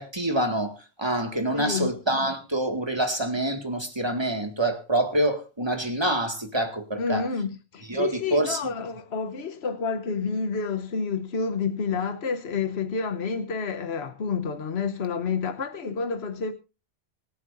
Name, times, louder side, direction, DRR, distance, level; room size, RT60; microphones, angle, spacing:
voice 1, 0.0-7.3 7.9-8.6, right 1 dB, 25° right, 2.0 m, -26 dB
voice 2, 1.5-1.9 6.9-16.5, left 5 dB, 70° left, 1.3 m, -29 dB
25.0 x 9.6 x 2.6 m
omnidirectional pair, 1.1 m